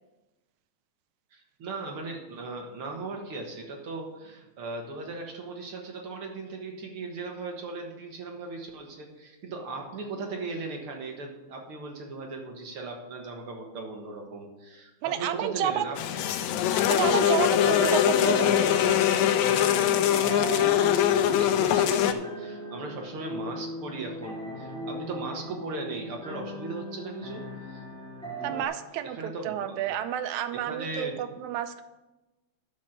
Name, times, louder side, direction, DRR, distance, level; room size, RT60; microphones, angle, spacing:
voice 1, 1.3-16.2 17.6-27.8 29.1-30.0 30.5-31.3, right 3 dB, 55° right, 1 dB, 2.0 m, -38 dB
voice 2, 15.0-15.9 16.9-18.5 28.4-31.9, right 10 dB, 90° right, 10 dB, 2.1 m, -30 dB
sound 1, 16.0-22.1, left 11 dB, 85° left, 2.0 m, -23 dB
sound 2, 18.6-28.6, equal, 5° left, 0.9 m, -38 dB
10.0 x 6.3 x 6.5 m, 1.1 s
omnidirectional pair, 3.3 m